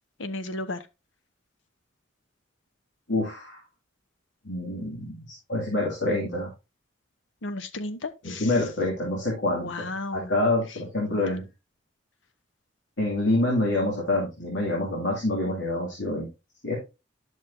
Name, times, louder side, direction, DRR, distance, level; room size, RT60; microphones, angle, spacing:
voice 1, 0.2-0.8 7.4-8.5 9.5-10.3 11.0-11.2, left 2 dB, 90° left, 0.9 m, -34 dB
voice 2, 3.1-3.6 4.4-6.5 8.2-11.4 13.0-16.3 16.6-16.8, left 2 dB, 70° left, 2.5 m, -27 dB
11.0 x 6.3 x 2.7 m
head